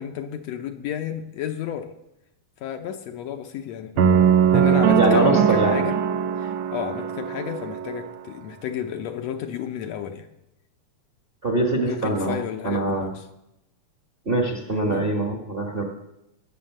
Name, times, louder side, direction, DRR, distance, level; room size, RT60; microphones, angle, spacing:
voice 1, 0.0-1.9 2.6-4.1 4.5-6.0 6.4-10.3 11.8-13.3 14.7-15.1, left 9 dB, 70° left, 6 dB, 1.9 m, -32 dB
sound 1, 4.0-8.1, right 7 dB, 80° right, 1.1 m, -20 dB
voice 2, 5.0-5.8 11.4-12.4 12.6-13.1 14.2-15.8, right 2 dB, 30° right, 2 dB, 1.0 m, -23 dB
19.0 x 6.8 x 6.6 m, 0.86 s
omnidirectional pair, 3.3 m